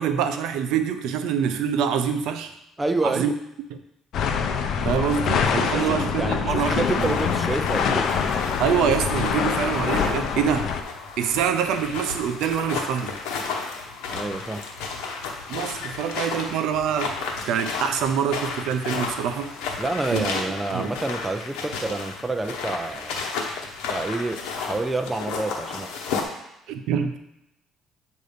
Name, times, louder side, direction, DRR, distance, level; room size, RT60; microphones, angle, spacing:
voice 1, 0.0-2.5 3.0-3.3 4.8-7.2 8.6-10.7 11.2-13.1 15.5-17.2 17.5-19.5 20.1-20.3 20.7-20.9 26.7-27.2, right 8 dB, 80° right, 8 dB, 0.5 m, -25 dB
voice 2, 2.8-3.3 5.5-8.1 14.1-14.7 19.8-23.2 23.9-26.0, right 2 dB, 10° right, 6 dB, 0.5 m, -28 dB
sound 1, 4.1-10.8, left 6 dB, 60° left, 0.6 m, -25 dB
sound 2, 6.7-26.2, left 4 dB, 90° left, 1.0 m, -33 dB
7.8 x 2.6 x 5.1 m, 0.85 s
cardioid pair, 120°, 0 cm